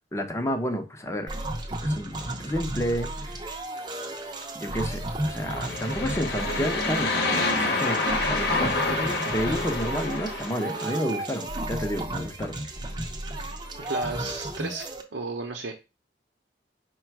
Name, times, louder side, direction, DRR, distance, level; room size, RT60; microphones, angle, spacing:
voice 1, 0.1-1.3 1.8-3.1 4.5-12.6, equal, 15° left, 5 dB, 0.6 m, -30 dB
sound 1, 1.3-15.0, right 1 dB, 25° right, 0.6 m, -33 dB
sound 2, 5.4-10.8, left 3 dB, 60° left, 1.0 m, -28 dB
voice 2, 13.9-14.8 15.1-15.7, right 3 dB, 75° right, 2 dB, 0.7 m, -33 dB
4.9 x 2.3 x 4.5 m, 0.28 s
head